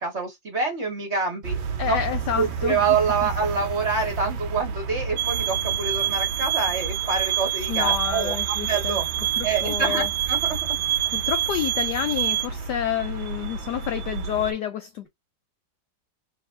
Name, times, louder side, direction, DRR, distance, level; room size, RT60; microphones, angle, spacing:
voice 1, 0.0-1.6 1.9-2.0 2.4-9.0 9.4-10.6, right 4 dB, 35° right, 1.4 m, -26 dB
sound 1, 1.4-14.5, right 4 dB, 70° right, 1.5 m, -33 dB
voice 2, 1.8-2.8 7.7-9.0 9.4-10.1 11.1-15.1, left 10 dB, 85° left, 0.9 m, -29 dB
sound 2, 5.2-12.5, right 13 dB, 90° right, 1.5 m, -26 dB
4.1 x 3.2 x 2.5 m
omnidirectional pair, 2.3 m